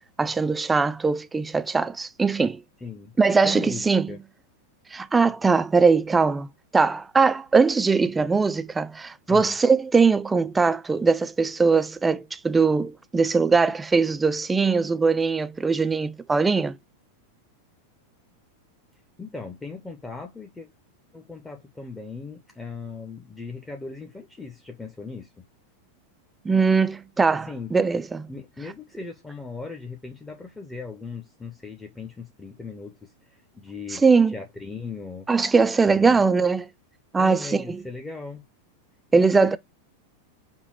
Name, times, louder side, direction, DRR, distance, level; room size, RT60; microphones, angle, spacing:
voice 1, 0.2-2.6 3.2-4.1 4.9-16.8 26.4-28.3 33.9-34.3 35.3-36.7 37.1-37.8 39.1-39.6, right 4 dB, 10° right, 0.4 m, -21 dB
voice 2, 2.8-3.1 3.4-4.2 9.3-9.5 19.2-20.7 21.1-25.5 27.5-27.7 28.3-35.3 35.9-36.2 37.2-38.4 39.1-39.6, left 4 dB, 10° left, 0.8 m, -38 dB
5.6 x 2.2 x 4.2 m
figure-of-eight pair, 90°, 0 cm